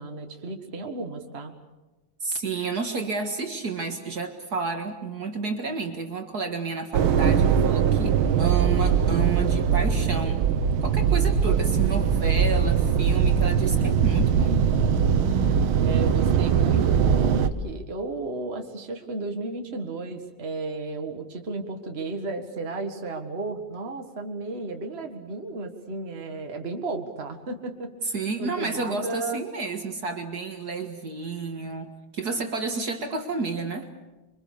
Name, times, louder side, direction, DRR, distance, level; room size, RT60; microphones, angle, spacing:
voice 1, 0.0-1.5 11.5-11.6 15.8-29.4, right 3 dB, 30° right, 4 dB, 2.0 m, -33 dB
voice 2, 2.2-10.4 10.8-14.6 28.0-33.9, right 4 dB, 50° right, 5 dB, 2.2 m, -31 dB
sound 1, 6.9-17.5, right 7 dB, 85° right, 1.9 m, -21 dB
26.5 x 24.0 x 6.8 m, 1.1 s
omnidirectional pair, 2.2 m